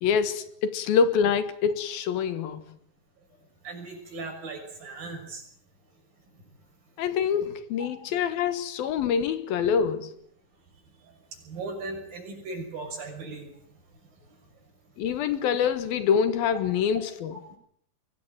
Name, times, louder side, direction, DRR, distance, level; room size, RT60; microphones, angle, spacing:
voice 1, 0.0-2.6 7.0-10.1 15.0-17.4, left 7 dB, 75° left, 3.2 m, -25 dB
voice 2, 3.6-5.4 7.8-7.9 11.0-11.1 11.4-13.5 16.9-17.0, right 3 dB, 65° right, 7.9 m, -38 dB
23.5 x 18.0 x 9.3 m
omnidirectional pair, 4.4 m